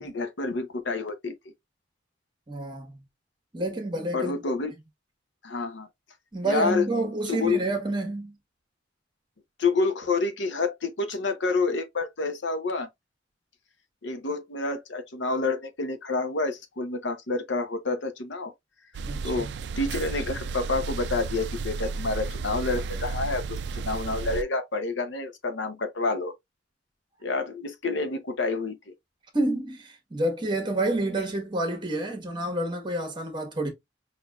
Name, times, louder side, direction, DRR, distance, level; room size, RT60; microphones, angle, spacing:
voice 1, 0.0-1.5 4.1-4.7 5.4-5.9 6.4-6.9 7.3-7.6 9.6-12.9 14.0-18.5 19.2-26.3 27.2-28.9, left 3 dB, 75° left, 0.8 m, -28 dB
voice 2, 2.5-3.0 3.5-4.4 6.3-8.3 19.0-19.5 29.3-33.7, right 2 dB, 25° right, 1.3 m, -29 dB
sound 1, 18.9-24.4, right 4 dB, 65° right, 0.3 m, -33 dB
6.0 x 2.8 x 2.3 m
head